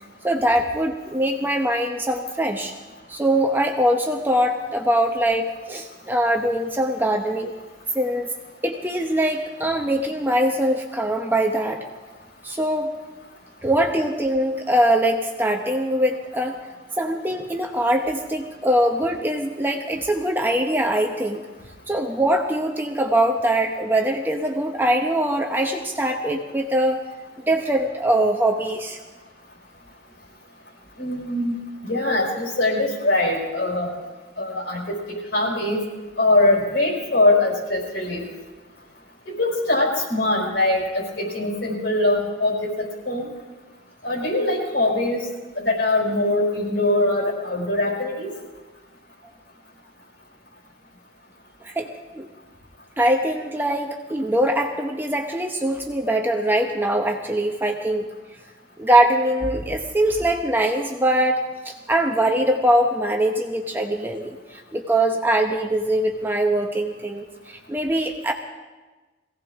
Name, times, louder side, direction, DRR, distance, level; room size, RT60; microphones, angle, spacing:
voice 1, 0.2-2.7 3.1-7.5 7.9-8.3 8.6-11.8 12.4-12.9 13.6-16.6 17.0-21.4 21.9-27.0 27.5-29.0 51.6-51.9 52.1-52.3 53.0-58.1 58.8-68.3, right 1 dB, 10° right, 2 dB, 0.8 m, -22 dB
voice 2, 31.0-31.6 31.8-33.9 34.4-35.8 36.2-38.3 39.3-43.3 44.0-45.2 45.6-48.3, left 2 dB, 60° left, -2 dB, 5.2 m, -22 dB
22.5 x 17.0 x 3.6 m, 1.2 s
head